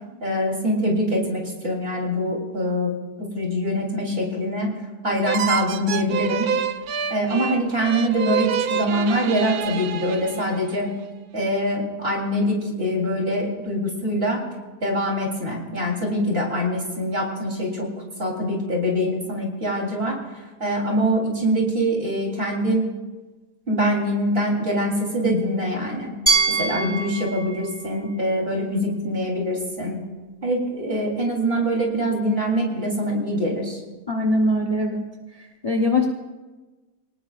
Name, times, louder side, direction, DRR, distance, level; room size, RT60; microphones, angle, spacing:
voice 1, 0.2-2.9 3.3-4.7 5.0-6.5 7.1-10.9 11.3-14.4 14.8-17.9 18.2-20.2 20.6-22.9 23.7-26.1 26.5-30.0 30.4-33.8, equal, 35° right, -2 dB, 4.0 m, -24 dB
sound 1, 5.2-10.7, right 7 dB, 70° right, 1.2 m, -27 dB
Glass, 26.3-29.2, right 4 dB, 15° right, 3.2 m, -25 dB
voice 2, 34.1-35.0 35.6-36.1, left 1 dB, 25° left, 2 dB, 1.2 m, -21 dB
29.0 x 19.0 x 2.5 m, 1.2 s
omnidirectional pair, 1.7 m